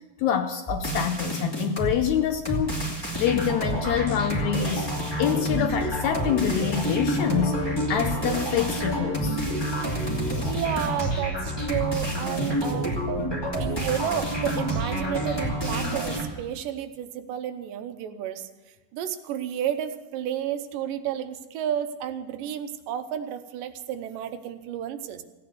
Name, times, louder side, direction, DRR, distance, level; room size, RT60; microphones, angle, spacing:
voice 1, 0.2-2.8 3.2-4.9 5.2-9.4, left 9 dB, 75° left, 8 dB, 1.7 m, -26 dB
sound 1, 0.7-2.0 2.4-16.2, right 1 dB, 10° left, 1.9 m, -28 dB
voice 2, 10.4-13.0 13.5-18.5 18.9-25.2, right 10 dB, 85° right, 9 dB, 2.5 m, -31 dB
16.0 x 9.5 x 7.9 m, 1.2 s
omnidirectional pair, 3.9 m